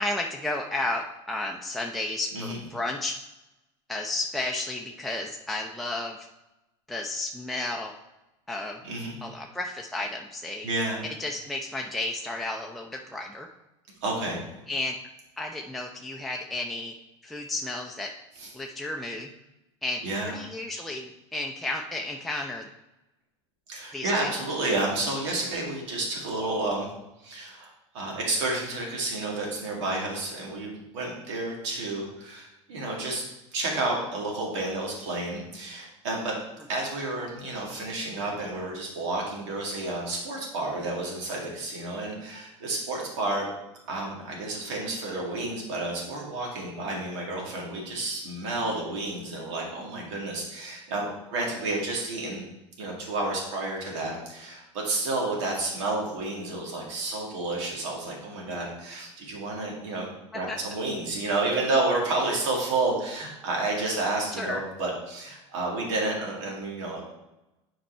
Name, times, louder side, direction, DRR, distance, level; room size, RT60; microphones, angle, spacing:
voice 1, 0.0-3.2 3.9-6.3 6.9-7.9 8.5-8.8 9.2-10.7 11.2-13.5 14.7-14.9 15.4-16.9 17.2-18.1 18.5-19.3 19.8-20.0 20.3-22.7 23.9-24.3 60.3-60.6 64.4-64.6, left 2 dB, ahead, 0 dB, 0.6 m, -32 dB
voice 2, 8.8-9.2 10.6-11.0 14.0-14.4 18.4-18.5 20.0-20.3 23.7-26.9 27.2-33.2 33.5-36.3 36.7-43.5 43.9-52.4 52.8-67.1, right 2 dB, 75° right, -2 dB, 2.3 m, -30 dB
7.7 x 4.6 x 4.3 m, 0.95 s
hypercardioid pair, 90°, 15 cm